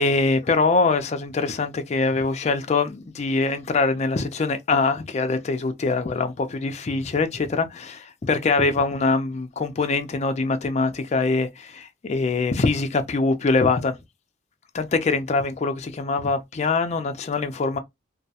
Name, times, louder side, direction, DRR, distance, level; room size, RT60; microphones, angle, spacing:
voice 1, 0.0-14.0 14.7-17.8, left 3 dB, 35° left, 0.4 m, -23 dB
2.2 x 2.1 x 2.7 m
head